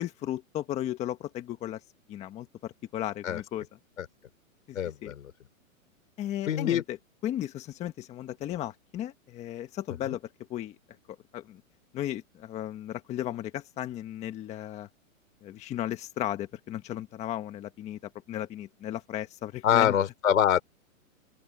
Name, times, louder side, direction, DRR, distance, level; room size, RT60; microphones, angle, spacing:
voice 1, 0.0-1.8 2.1-3.7 4.7-5.1 6.2-7.0 7.2-10.2 10.5-10.8 11.3-11.6 11.9-14.9 15.4-19.9, left 12 dB, 15° left, 1.4 m, -35 dB
voice 2, 4.8-5.3 6.5-6.8 10.1-10.2 19.6-20.6, left 9 dB, 70° left, 5.0 m, -25 dB
open air
hypercardioid pair, 155°, 42 cm